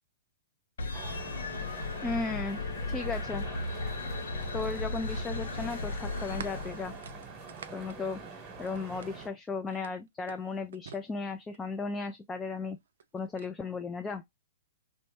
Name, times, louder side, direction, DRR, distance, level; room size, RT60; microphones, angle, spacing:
sound 1, 0.8-7.4, left 3 dB, 75° left, 0.5 m, -36 dB
sound 2, 0.9-9.3, right 4 dB, 30° right, 1.1 m, -45 dB
voice 1, 2.0-2.6 2.9-3.5 4.5-6.9 7.7-8.2 8.6-12.8 13.1-14.2, left 4 dB, 15° left, 0.3 m, -35 dB
sound 3, 4.4-9.3 9.7-11.8 12.7-13.5, right 7 dB, 70° right, 0.3 m, -50 dB
2.9 x 2.1 x 3.2 m
hypercardioid pair, 120°, 0 cm